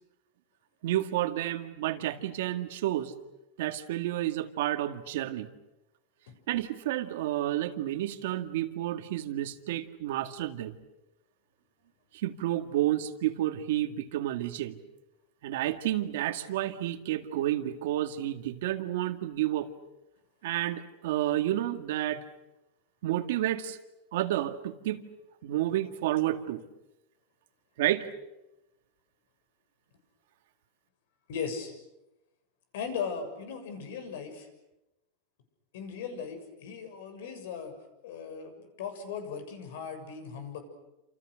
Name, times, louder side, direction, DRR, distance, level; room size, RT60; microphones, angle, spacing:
voice 1, 0.8-3.1 3.6-5.5 6.5-10.8 12.1-14.8 15.4-19.7 20.4-22.2 23.0-23.8 24.1-25.0 25.4-26.6 27.8-28.1, right 13 dB, 70° right, 8 dB, 2.0 m, -30 dB
voice 2, 31.3-31.7 32.7-34.5 35.7-37.7 38.0-40.6, left 6 dB, 75° left, 8 dB, 7.0 m, -38 dB
28.5 x 28.0 x 6.5 m, 0.94 s
supercardioid pair, 160°, 0 cm